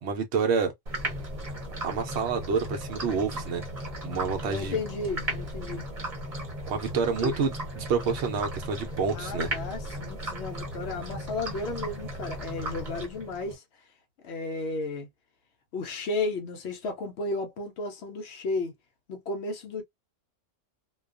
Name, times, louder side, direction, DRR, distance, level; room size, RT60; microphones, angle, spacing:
voice 1, 0.0-0.7 1.8-3.6 4.0-4.8 6.7-9.5, right 5 dB, 65° right, 0.8 m, -28 dB
sound 1, 0.9-13.6, right 1 dB, 35° right, 0.9 m, -36 dB
voice 2, 4.4-5.9 7.2-7.3 9.1-13.6 14.2-15.1 15.7-18.7 19.1-19.8, left 3 dB, 65° left, 0.8 m, -33 dB
2.3 x 2.2 x 2.4 m
omnidirectional pair, 1.3 m